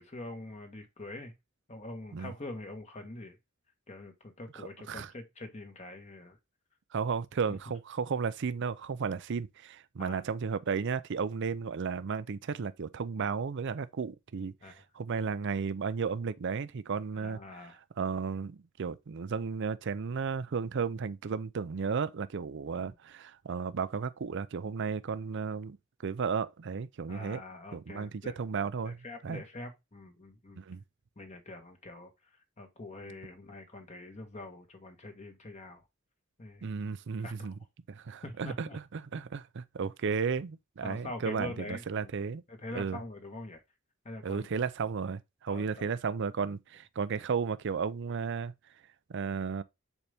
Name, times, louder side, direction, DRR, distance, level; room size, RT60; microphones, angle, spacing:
voice 1, 0.0-1.3 1.7-3.4 3.9-6.4 10.0-10.2 14.6-14.8 17.1-17.8 22.7-22.9 27.1-28.4 28.8-30.6 31.2-32.1 32.6-35.8 36.4-36.7 37.2-37.6 38.2-38.8 40.0-40.1 40.8-42.1 42.5-43.6 44.0-44.5 45.5-45.9, left 2 dB, 35° left, 1.4 m, -44 dB
voice 2, 6.9-17.4 18.0-25.8 26.0-27.4 27.7-28.1 28.4-29.0 29.2-29.4 30.6-30.8 36.6-37.6 37.9-42.4 42.7-43.0 44.2-48.5 49.1-49.6, right 5 dB, 60° right, 0.5 m, -34 dB
7.1 x 4.1 x 3.4 m
head